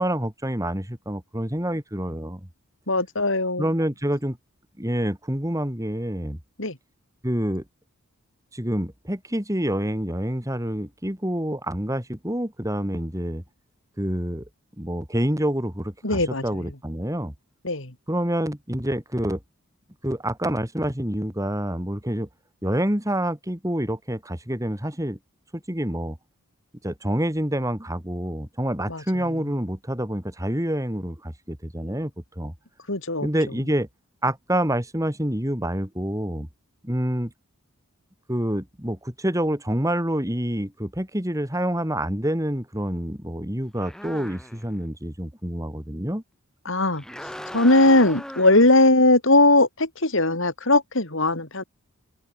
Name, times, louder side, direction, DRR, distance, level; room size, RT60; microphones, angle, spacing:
voice 1, 0.0-2.4 3.6-4.4 4.8-6.4 7.2-7.6 8.5-13.4 14.0-14.5 14.8-17.3 18.1-19.4 20.0-22.3 22.6-25.2 25.5-26.2 26.8-32.1 32.4-32.5 33.2-33.9 34.2-36.5 36.8-37.3 38.3-46.2, right 1 dB, 15° right, 3.5 m, -27 dB
voice 2, 2.9-3.7 6.6-6.8 16.0-16.7 17.6-17.9 28.9-29.0 32.9-33.3 46.7-47.0 47.5-51.6, left 2 dB, 60° left, 4.0 m, -19 dB
sound 1, 43.8-44.8 46.9-48.7, equal, 5° left, 7.0 m, -38 dB
head